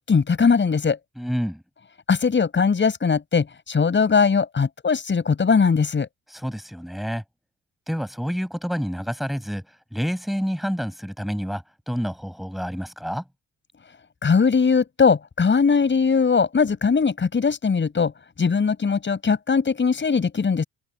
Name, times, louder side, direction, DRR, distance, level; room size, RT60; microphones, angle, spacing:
voice 1, 0.1-1.0 2.1-6.1 14.2-18.1 18.4-20.6, left 5 dB, 40° left, 7.2 m, -20 dB
voice 2, 1.2-1.6 6.3-7.2 7.9-9.7 9.9-13.2, equal, ahead, 7.9 m, -28 dB
open air
cardioid pair, 90°, 30 cm